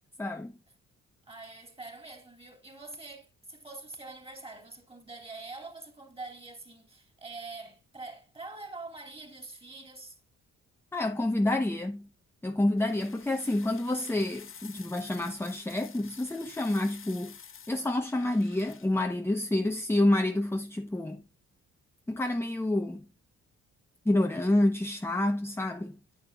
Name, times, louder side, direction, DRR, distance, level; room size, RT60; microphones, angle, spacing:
voice 1, 0.2-0.5 10.9-12.1 12.4-17.4 17.7-21.2 22.1-23.1 24.0-26.0, left 1 dB, 10° left, 0.9 m, -28 dB
voice 2, 1.2-10.2, right 3 dB, 20° right, 3.4 m, -45 dB
sound 1, 12.8-18.9, left 7 dB, 45° left, 1.5 m, -50 dB
9.7 x 8.9 x 2.4 m
cardioid pair, 90°, 30 cm